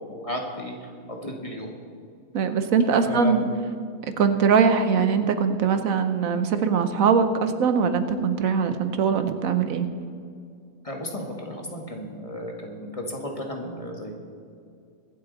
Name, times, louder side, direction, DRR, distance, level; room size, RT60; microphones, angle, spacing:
voice 1, 0.0-1.7 3.0-3.4 10.8-14.1, equal, 25° left, 1 dB, 1.6 m, -34 dB
voice 2, 2.3-3.5 4.0-9.9, right 6 dB, 75° right, 9 dB, 1.2 m, -22 dB
23.5 x 8.1 x 3.9 m, 2.3 s
omnidirectional pair, 1.5 m